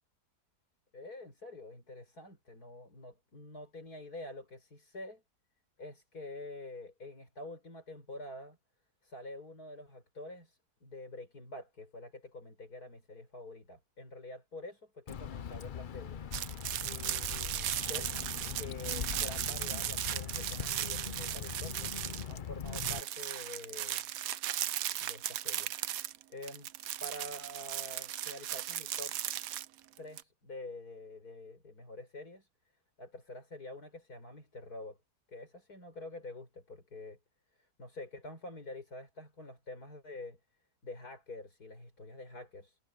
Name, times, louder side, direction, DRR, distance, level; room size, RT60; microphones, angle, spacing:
voice 1, 0.9-5.2 5.8-8.6 9.0-18.1 18.6-22.0 22.3-24.1 25.0-25.7 26.3-26.7 27.0-29.2 30.0-32.5 33.0-35.0 35.3-37.2 37.5-40.4 40.8-42.8, left 2 dB, 70° left, 6.6 m, -47 dB
Water / Drip, 15.1-23.0, left 8 dB, 50° left, 0.6 m, -41 dB
sound 1, 16.3-22.4 22.7-30.2, right 12 dB, 65° right, 1.0 m, -37 dB
omnidirectional pair, 1.7 m